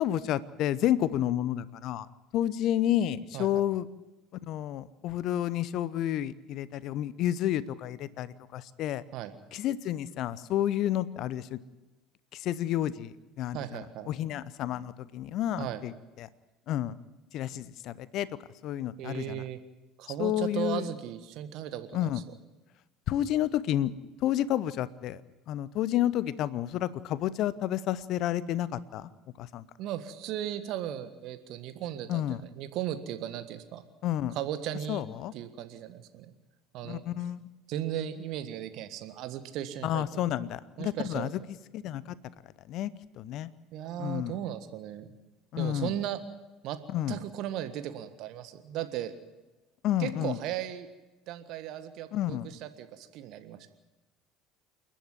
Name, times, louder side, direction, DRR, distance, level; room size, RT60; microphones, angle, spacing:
voice 1, 0.0-2.1 2.3-3.9 4.4-9.0 9.5-11.6 12.3-15.9 16.2-16.3 16.7-16.9 17.3-18.3 18.6-19.4 20.2-20.9 21.9-22.2 23.1-23.9 24.2-25.2 25.5-29.1 29.4-29.7 32.1-32.4 34.0-34.3 34.9-35.3 36.8-37.5 39.8-41.4 41.7-42.2 42.7-42.9 43.2-43.5 44.0-44.4 45.5-45.9 46.9-47.2 49.8-50.4 52.1-52.5, left 12 dB, 50° left, 19 dB, 0.7 m, -30 dB
voice 2, 3.3-3.6 9.1-9.3 13.5-14.1 15.6-15.8 19.0-19.6 20.0-22.1 29.8-33.8 34.3-35.0 35.3-36.3 36.7-37.0 37.7-40.2 40.8-41.3 43.7-45.1 45.5-46.2 46.6-46.8 47.1-49.1 50.0-50.9 51.3-53.7, right 11 dB, 55° right, 10 dB, 1.6 m, -36 dB
28.5 x 10.5 x 9.5 m, 1.1 s
figure-of-eight pair, 65°, 0 cm